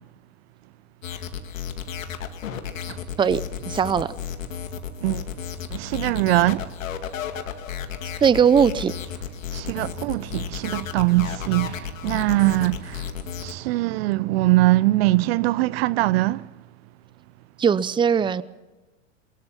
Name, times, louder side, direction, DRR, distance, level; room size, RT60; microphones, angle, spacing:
sound 1, 1.0-13.5, left 8 dB, 75° left, 2.3 m, -33 dB
voice 1, 3.7-4.1 8.2-8.9 17.6-18.4, right 7 dB, 10° right, 0.7 m, -19 dB
voice 2, 5.7-6.7 9.5-13.1 13.4-16.5, right 18 dB, 50° right, 0.6 m, -22 dB
23.0 x 22.5 x 5.9 m
hypercardioid pair, 105°, 39 cm